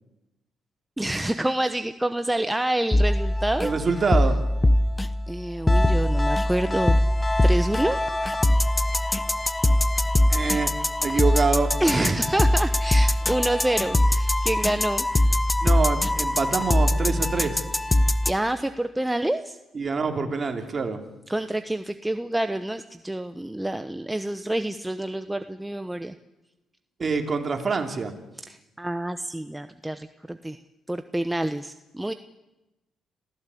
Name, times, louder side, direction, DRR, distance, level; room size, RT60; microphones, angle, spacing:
voice 1, 1.0-3.7 5.3-7.0 7.4-8.0 11.8-15.1 18.3-19.6 21.3-26.1 28.5-30.6 30.9-32.1, right 1 dB, 10° right, 9 dB, 0.9 m, -27 dB
sound 1, 2.9-18.3, left 1 dB, 15° left, 1.0 m, -22 dB
voice 2, 3.6-4.4 10.3-10.7 11.0-12.2 15.6-17.6 19.7-21.0 27.0-28.1, right 4 dB, 35° right, 4 dB, 3.3 m, -25 dB
26.5 x 16.0 x 8.5 m, 1.0 s
cardioid pair, 90°, 0 cm